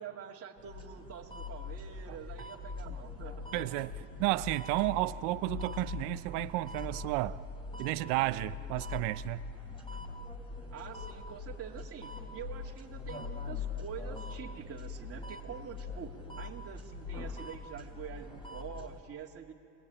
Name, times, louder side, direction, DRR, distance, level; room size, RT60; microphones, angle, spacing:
voice 1, 0.0-3.5 4.0-4.1 10.7-19.5, right 8 dB, 35° right, 2.6 m, -46 dB
sound 1, 0.6-19.0, left 4 dB, 10° left, 3.4 m, -42 dB
voice 2, 3.5-7.4 7.8-9.4, right 18 dB, 75° right, 0.8 m, -32 dB
27.0 x 21.0 x 9.0 m
supercardioid pair, 110°, 40 cm